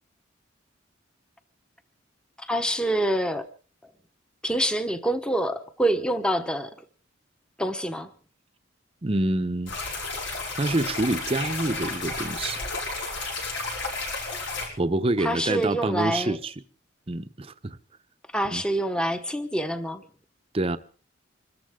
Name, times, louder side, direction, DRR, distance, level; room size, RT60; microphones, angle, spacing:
voice 1, 2.4-3.5 4.4-6.7 7.6-8.1 15.2-16.4 18.3-20.1, right 1 dB, 5° left, 0.9 m, -26 dB
voice 2, 9.0-9.7 10.6-12.6 14.8-16.5 17.1-17.8 18.5-18.6 20.5-20.8, right 2 dB, 30° right, 0.7 m, -26 dB
sound 1, 9.7-14.7, left 3 dB, 70° left, 7.1 m, -32 dB
25.5 x 14.0 x 3.6 m
head